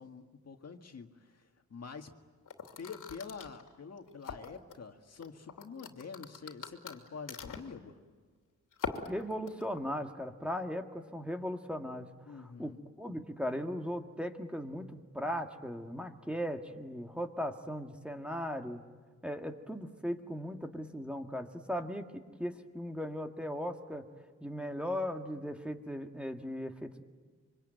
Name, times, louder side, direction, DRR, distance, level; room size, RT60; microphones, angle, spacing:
voice 1, 0.0-2.1 2.8-8.0 12.3-12.8, left 5 dB, 55° left, 5 dB, 2.0 m, -47 dB
sound 1, 2.5-4.8 5.2-7.8 8.7-9.8, left 5 dB, 85° left, 2.9 m, -42 dB
voice 2, 9.1-12.7 13.0-18.8 19.2-24.1 24.4-27.0, equal, 5° right, 3 dB, 1.9 m, -38 dB
26.0 x 24.5 x 9.2 m, 1.5 s
cardioid pair, 95°, 31 cm